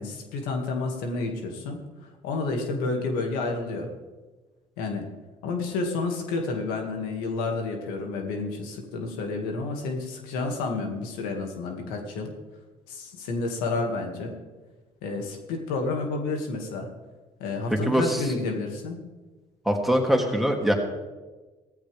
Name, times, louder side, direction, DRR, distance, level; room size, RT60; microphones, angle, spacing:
voice 1, 0.0-3.9 4.8-5.1 5.4-12.3 12.9-14.4 15.0-16.9 17.4-19.0, left 3 dB, 90° left, 3 dB, 2.3 m, -30 dB
voice 2, 17.7-18.2 19.6-20.7, equal, ahead, 1 dB, 2.9 m, -23 dB
16.5 x 14.5 x 3.6 m, 1.2 s
supercardioid pair, 75°, 15 cm